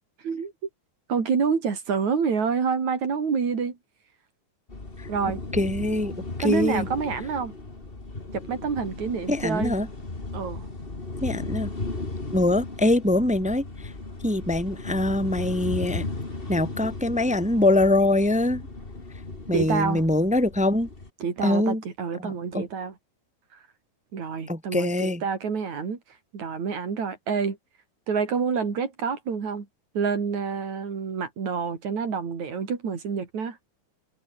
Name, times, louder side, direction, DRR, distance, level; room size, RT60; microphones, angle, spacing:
voice 1, 1.1-3.8 5.1-5.4 6.4-7.5 8.3-9.7 10.3-10.7 19.5-20.0 21.2-22.9 24.1-26.0 26.3-27.6 28.1-29.7 29.9-33.6, right 6 dB, 70° right, 5.0 m, -27 dB
sound 1, 4.7-21.1, left 2 dB, 20° left, 2.8 m, -36 dB
voice 2, 5.5-6.1 6.4-6.9 9.3-9.9 11.2-11.7 12.3-13.9 14.2-16.0 16.5-18.6 19.5-20.9 21.4-21.8 22.2-22.7 24.5-25.2, left 1 dB, 5° right, 1.6 m, -23 dB
omnidirectional pair, 3.4 m